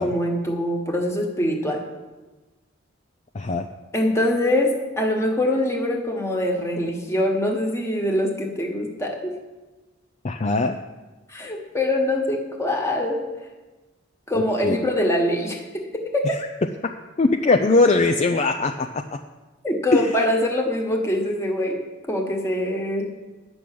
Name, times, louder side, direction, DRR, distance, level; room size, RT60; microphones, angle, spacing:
voice 1, 0.0-1.8 3.9-9.3 11.3-13.2 14.3-16.4 19.6-21.8 22.1-23.1, left 1 dB, 15° left, 1 dB, 1.5 m, -24 dB
voice 2, 3.3-3.6 10.2-10.8 14.3-14.8 16.3-16.4 16.8-19.0 19.9-20.1, left 3 dB, 35° left, 5 dB, 0.4 m, -21 dB
11.0 x 6.2 x 8.5 m, 1.2 s
head